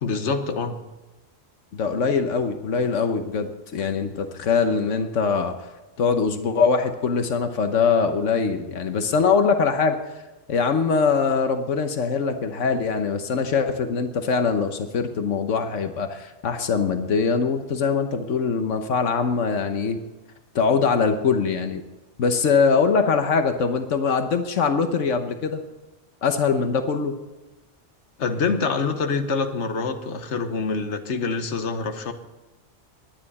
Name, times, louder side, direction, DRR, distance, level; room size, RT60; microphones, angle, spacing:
voice 1, 0.0-0.8 28.2-32.1, left 4 dB, 70° left, 7 dB, 1.4 m, -26 dB
voice 2, 1.7-5.6 6.0-10.0 10.5-20.0 20.5-21.8 22.2-25.6 26.2-27.2, left 5 dB, 90° left, 7 dB, 1.4 m, -22 dB
22.0 x 10.0 x 4.2 m, 1.1 s
omnidirectional pair, 1.2 m